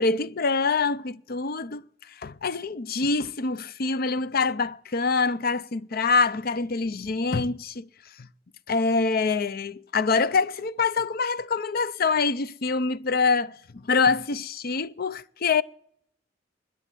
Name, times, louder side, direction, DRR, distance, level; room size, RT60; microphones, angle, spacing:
voice 1, 0.0-1.8 2.2-7.9 8.7-15.6, left 4 dB, 55° left, 0.6 m, -25 dB
21.0 x 7.2 x 9.0 m
head